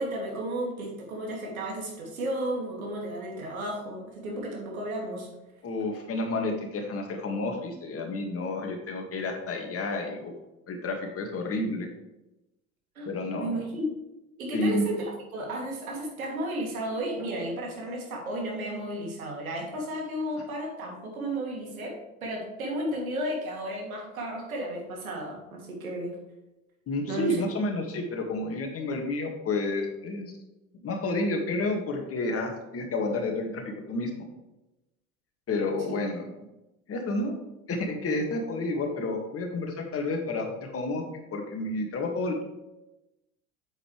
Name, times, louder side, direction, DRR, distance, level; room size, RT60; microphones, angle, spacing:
voice 1, 0.0-5.3 12.9-13.1 13.3-14.0 14.4-26.2 27.1-27.4 35.9-36.0, right 1 dB, 80° right, -1 dB, 2.9 m, -33 dB
voice 2, 5.6-10.3 10.7-11.9 13.1-13.5 14.5-14.9 26.9-30.4 30.8-34.2 35.5-36.3 36.9-37.4 37.7-41.0 41.3-42.4, left 2 dB, 35° left, 3 dB, 2.1 m, -30 dB
8.6 x 8.0 x 3.3 m, 0.96 s
hypercardioid pair, 75°, 42 cm